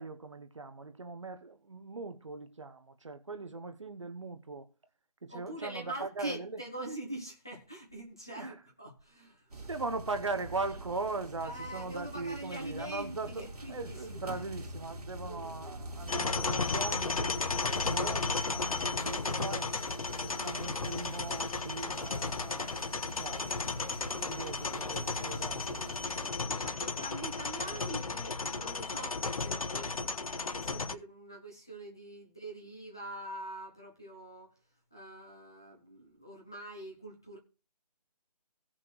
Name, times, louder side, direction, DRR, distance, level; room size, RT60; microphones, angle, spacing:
voice 1, 0.0-4.7 5.2-6.6 8.3-8.6 9.7-19.8 20.2-23.6 24.2-25.8, right 3 dB, 45° right, 1.1 m, -40 dB
voice 2, 5.3-9.7 11.4-14.4 15.2-15.9 24.0-34.5 34.9-37.4, right 1 dB, 5° left, 0.6 m, -44 dB
sound 1, 9.5-26.3, right 1 dB, 65° right, 2.0 m, -45 dB
sound 2, 16.1-30.9, left 3 dB, 55° left, 1.2 m, -34 dB
16.0 x 5.9 x 4.7 m
figure-of-eight pair, 175°, 21 cm